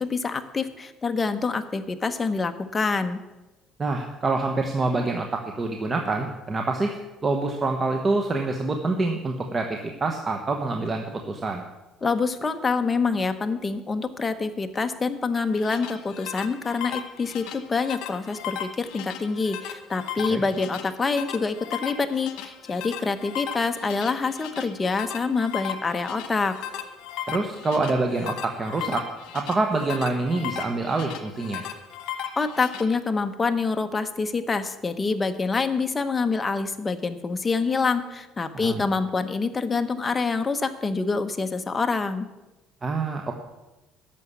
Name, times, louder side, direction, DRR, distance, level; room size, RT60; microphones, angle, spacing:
voice 1, 0.0-3.2 12.0-26.6 32.4-42.3, left 4 dB, 20° left, 8 dB, 0.9 m, -26 dB
voice 2, 3.8-7.0 7.2-11.6 20.3-20.4 27.3-29.0 29.3-31.6 38.5-38.8 42.8-43.3, right 3 dB, 25° right, 3 dB, 1.0 m, -26 dB
sound 1, 15.4-32.8, left 10 dB, 80° left, 1.2 m, -36 dB
11.0 x 7.0 x 8.2 m, 1.1 s
cardioid pair, 120°, 0 cm